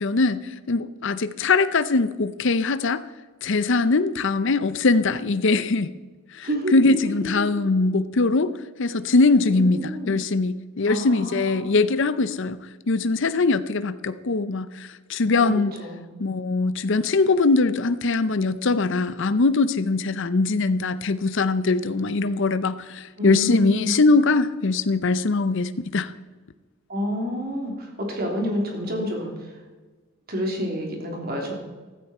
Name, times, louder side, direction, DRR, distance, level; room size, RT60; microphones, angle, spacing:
voice 1, 0.0-3.0 3.4-5.9 6.3-8.5 8.8-9.8 10.1-12.6 12.9-15.7 16.2-26.1, left 3 dB, 55° left, 13 dB, 0.6 m, -22 dB
voice 2, 6.4-7.6 9.5-10.1 10.8-11.7 15.3-16.0 23.2-23.9 26.9-29.3 30.3-31.5, equal, 45° right, 1 dB, 3.1 m, -29 dB
15.0 x 13.5 x 4.3 m, 1.3 s
head